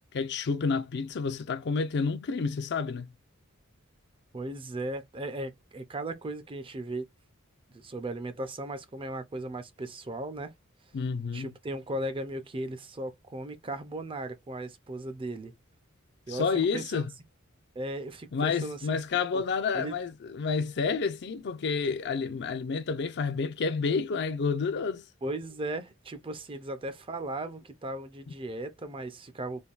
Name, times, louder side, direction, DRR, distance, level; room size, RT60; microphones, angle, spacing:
voice 1, 0.1-3.1 10.9-11.5 16.3-17.1 18.3-25.1, left 5 dB, 55° left, 0.5 m, -29 dB
voice 2, 4.3-7.1 7.7-10.5 11.3-15.5 16.3-17.0 17.8-19.0 19.3-19.4 19.7-19.9 25.2-29.7, right 1 dB, 25° right, 0.5 m, -37 dB
3.4 x 2.2 x 2.4 m
head